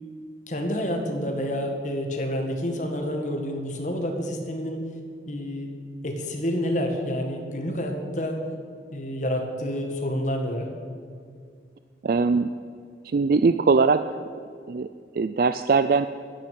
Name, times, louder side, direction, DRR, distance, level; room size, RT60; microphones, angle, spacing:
voice 1, 0.5-4.8 5.3-5.7 6.0-8.4 8.9-10.7, equal, 40° left, 3 dB, 1.9 m, -28 dB
voice 2, 12.0-12.5 13.0-14.1 14.7-14.9 15.1-16.1, right 4 dB, 50° right, 11 dB, 0.4 m, -21 dB
10.5 x 10.0 x 8.5 m, 2.2 s
head